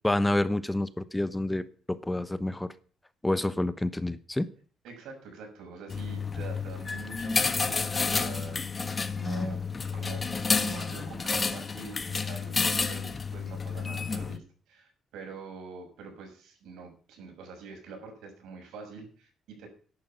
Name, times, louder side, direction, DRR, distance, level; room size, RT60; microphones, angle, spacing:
voice 1, 0.0-2.7 3.2-4.5, left 1 dB, 10° left, 14 dB, 1.0 m, -28 dB
voice 2, 4.8-9.6 9.9-10.3 10.6-19.7, right 4 dB, 85° right, 4 dB, 6.1 m, -45 dB
sound 1, 5.9-14.4, left 4 dB, 30° left, 1.5 m, -30 dB
13.0 x 11.0 x 5.7 m, 0.43 s
cardioid pair, 90°, 0 cm